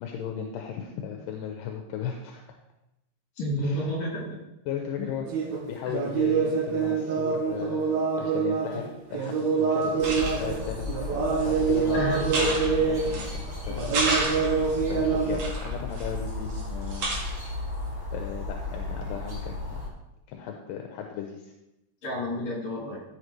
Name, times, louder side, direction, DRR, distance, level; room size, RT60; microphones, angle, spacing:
voice 1, 0.0-2.4 3.6-3.9 4.7-5.3 5.7-14.0 14.9-17.1 18.1-19.9 20.3-21.5, left 8 dB, 80° left, 3 dB, 2.4 m, -36 dB
voice 2, 3.4-4.2 5.0-5.1 11.9-12.2 22.0-23.0, left 1 dB, 50° left, -5 dB, 4.6 m, -30 dB
sound 1, 5.3-5.7 5.9-8.9 9.1-13.2 13.5-15.4, right 5 dB, 80° right, 3.1 m, -26 dB
sound 2, 9.2-9.3 9.8-10.6 11.3-11.8 12.2-13.4 13.8-14.8 15.3-16.6 16.9-17.5, right 2 dB, 55° right, 2.9 m, -31 dB
sound 3, 10.0-19.9, left 3 dB, 10° right, 1.3 m, -34 dB
13.5 x 6.5 x 3.3 m, 0.92 s
omnidirectional pair, 4.0 m